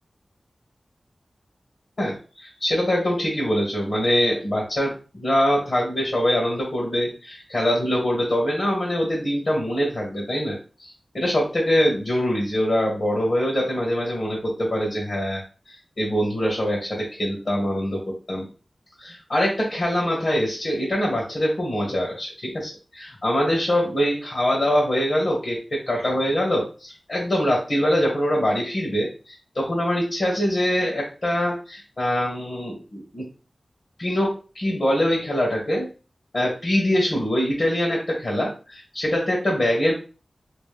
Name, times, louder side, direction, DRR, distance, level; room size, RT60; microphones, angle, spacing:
voice 1, 2.0-18.5 19.0-33.3 34.0-35.9 36.3-39.9, equal, 65° left, -2 dB, 1.3 m, -24 dB
3.1 x 3.0 x 3.3 m, 0.35 s
cardioid pair, 50°, 0 cm